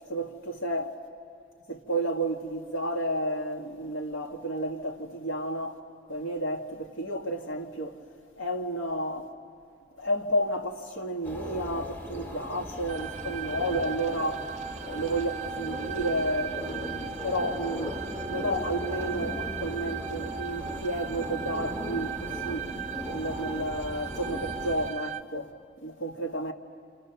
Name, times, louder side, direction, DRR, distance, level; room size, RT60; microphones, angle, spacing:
voice 1, 0.1-0.9 1.7-5.8 6.1-8.0 8.4-9.3 10.0-14.5 14.8-18.0 18.3-22.7 23.0-25.5 25.8-26.5, right 1 dB, 85° left, 1.8 m, -31 dB
sound 1, 11.2-24.9, left 1 dB, 10° left, 1.5 m, -38 dB
sound 2, 12.9-25.2, right 8 dB, 35° right, 0.6 m, -38 dB
29.0 x 29.0 x 6.9 m
head